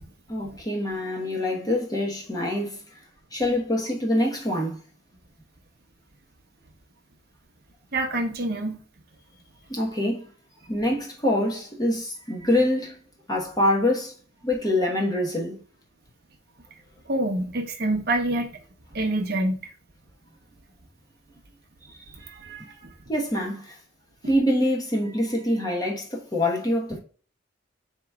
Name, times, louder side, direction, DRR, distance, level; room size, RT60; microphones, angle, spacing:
voice 1, 0.3-2.8 3.3-4.8 9.7-10.3 10.7-14.1 14.4-15.6 21.9-22.0 23.1-23.8 24.3-27.0, left 1 dB, 20° left, 1.0 m, -25 dB
voice 2, 7.9-8.8 17.0-18.6 18.9-19.7 22.2-22.9, right 1 dB, 50° right, 0.8 m, -27 dB
4.5 x 2.9 x 3.4 m
head